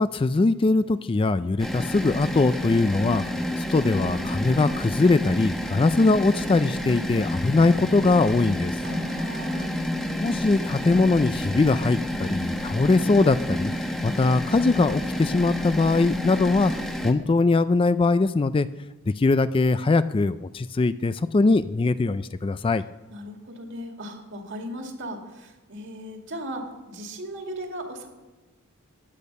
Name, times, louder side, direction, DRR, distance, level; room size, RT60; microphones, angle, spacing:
voice 1, 0.0-3.3 3.6-8.8 10.2-13.7 14.0-18.7 19.1-22.8, left 3 dB, 25° left, 14 dB, 0.3 m, -21 dB
sound 1, 1.6-17.1, equal, ahead, 1.0 m, -29 dB
voice 2, 8.8-9.7 23.1-28.1, equal, 55° right, 3 dB, 2.2 m, -37 dB
15.0 x 10.5 x 5.4 m, 1.2 s
head